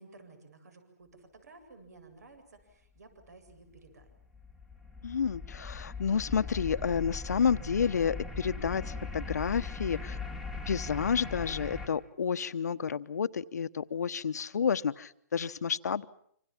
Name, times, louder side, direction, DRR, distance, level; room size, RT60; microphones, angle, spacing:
voice 1, 0.0-4.1, right 3 dB, 75° right, 9 dB, 7.9 m, -55 dB
sound 1, 3.5-11.9, left 4 dB, ahead, 1.7 m, -40 dB
voice 2, 5.0-10.2 10.7-16.0, left 6 dB, 75° left, 13 dB, 1.1 m, -30 dB
27.0 x 26.5 x 7.4 m, 0.66 s
hypercardioid pair, 165°, 9 cm